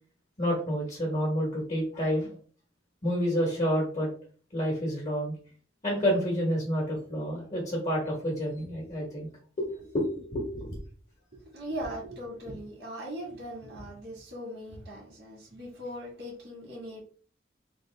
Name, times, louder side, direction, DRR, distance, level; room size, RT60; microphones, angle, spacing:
voice 1, 0.4-2.3 3.0-4.1 4.5-5.3 5.8-9.3 9.6-10.8, equal, 40° left, -3 dB, 1.2 m, -29 dB
voice 2, 11.3-17.0, equal, 75° right, -4 dB, 1.7 m, -39 dB
3.5 x 2.6 x 3.4 m, 0.43 s
head